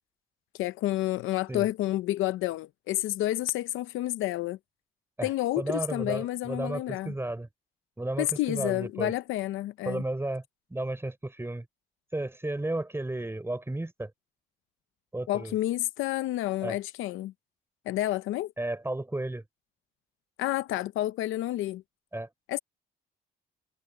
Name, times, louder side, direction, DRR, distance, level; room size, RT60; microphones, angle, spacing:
voice 1, 0.6-4.6 5.2-7.1 8.2-10.0 15.3-17.3 17.9-18.5 20.4-21.8 22.5-22.6, left 15 dB, 90° left, 0.6 m, -30 dB
voice 2, 5.6-7.5 8.0-9.1 9.9-10.4 10.7-11.7 12.1-14.1 15.1-15.5 16.6-16.8 18.6-19.4 22.1-22.3, right 2 dB, 10° right, 3.9 m, -33 dB
cardioid pair, 90°, 20 cm